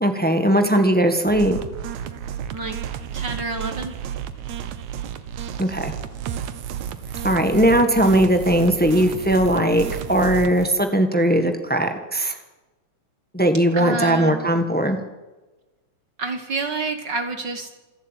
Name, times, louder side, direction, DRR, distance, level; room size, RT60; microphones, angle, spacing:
voice 1, 0.0-1.6 5.6-5.9 7.2-12.3 13.3-15.0, right 1 dB, 15° left, 6 dB, 0.3 m, -19 dB
sound 1, 1.2-10.7, right 9 dB, 75° right, 2.4 m, -32 dB
voice 2, 3.1-3.9 13.7-14.5 16.2-17.7, right 3 dB, 45° right, 7 dB, 1.7 m, -28 dB
27.0 x 11.5 x 9.1 m, 1.2 s
omnidirectional pair, 3.3 m